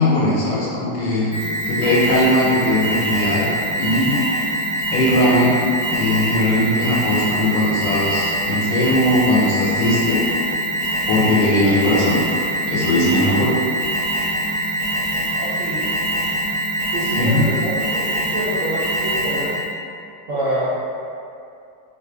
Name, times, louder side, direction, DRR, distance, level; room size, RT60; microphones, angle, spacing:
voice 1, 0.0-1.3 1.7-3.5 3.8-4.2 4.9-5.6 5.9-10.2 11.1-12.2 12.6-13.5 17.2-17.5, left 1 dB, 75° left, -6 dB, 1.2 m, -19 dB
Alarm, 1.3-19.7, right 1 dB, 35° right, 0.6 m, -23 dB
voice 2, 15.4-15.9 16.9-19.5 20.3-20.7, right 1 dB, 85° right, -11 dB, 0.7 m, -26 dB
2.9 x 2.5 x 3.3 m, 2.4 s
omnidirectional pair, 2.1 m